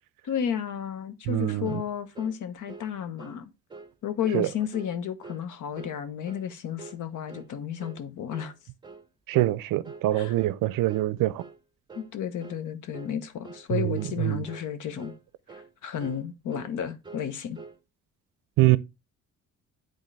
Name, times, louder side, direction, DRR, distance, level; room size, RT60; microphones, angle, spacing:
voice 1, 0.2-3.5 4.0-8.5 10.1-10.3 12.0-15.1 15.8-17.6, left 8 dB, 65° left, 1.0 m, -32 dB
voice 2, 1.3-1.8 4.3-4.5 9.3-11.4 13.7-14.4 18.6-18.8, right 16 dB, 80° right, 0.5 m, -24 dB
sound 1, 1.7-1.9 2.2-2.4 2.7-2.9 3.2-3.4 3.7-3.9 4.2-4.4 4.7-5.0 5.2-5.5 5.8-6.0 6.3-6.5 6.8-7.0 7.3-7.5 7.8-8.0 8.3-8.5 8.8-9.1 9.3-9.6 9.8-10.1 10.4-10.6 10.9-11.1 11.4-11.6 11.9-12.1 12.4-12.6 12.9-13.2 13.4-13.7 14.0-14.2 14.5-14.7 15.0-15.2 15.5-15.7 16.0-16.3 16.5-16.7 17.0-17.3 17.5-17.8, right 4 dB, 15° right, 1.0 m, -45 dB
9.9 x 3.9 x 3.2 m
cardioid pair, 110°, 33 cm